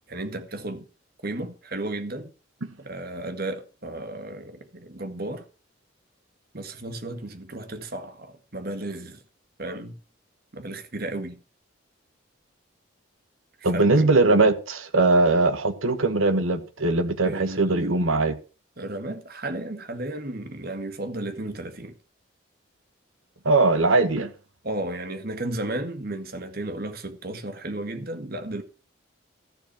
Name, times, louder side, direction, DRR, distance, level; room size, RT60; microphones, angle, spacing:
voice 1, 0.1-0.8 1.2-2.3 2.8-5.4 6.5-9.2 9.6-10.0 10.5-11.4 13.7-14.1 17.2-18.1 18.8-22.0 24.6-28.6, right 1 dB, 50° right, 1.8 m, -34 dB
voice 2, 13.6-18.4 23.4-24.3, right 3 dB, 80° right, 1.5 m, -20 dB
13.5 x 7.2 x 6.0 m
head